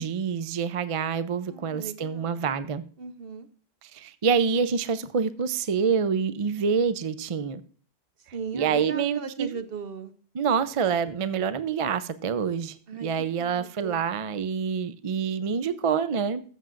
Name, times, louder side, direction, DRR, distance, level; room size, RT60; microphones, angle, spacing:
voice 1, 0.0-2.8 3.8-7.6 8.5-9.6 10.3-16.4, right 6 dB, 45° right, 13 dB, 0.4 m, -27 dB
voice 2, 1.5-2.4 3.0-3.5 8.3-10.1 12.9-13.1 13.4-14.0, right 5 dB, 60° right, 10 dB, 1.0 m, -37 dB
14.5 x 7.4 x 2.5 m, 0.42 s
omnidirectional pair, 1.1 m